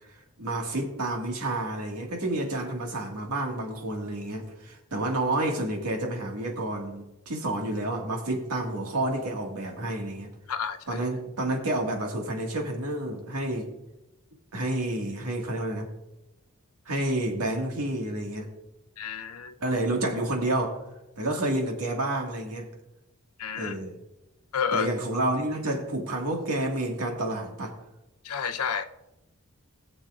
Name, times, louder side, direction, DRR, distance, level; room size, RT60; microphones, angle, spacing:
voice 1, 0.4-10.3 10.9-13.7 14.5-15.9 16.8-18.5 19.6-20.8 21.2-22.7 23.5-24.0 24.7-27.7, right 1 dB, 90° right, 1 dB, 1.9 m, -29 dB
voice 2, 10.5-11.0 19.0-19.5 23.4-23.8 24.5-24.9 28.2-28.8, left 7 dB, 75° left, 9 dB, 0.7 m, -30 dB
20.0 x 7.2 x 2.5 m, 0.96 s
head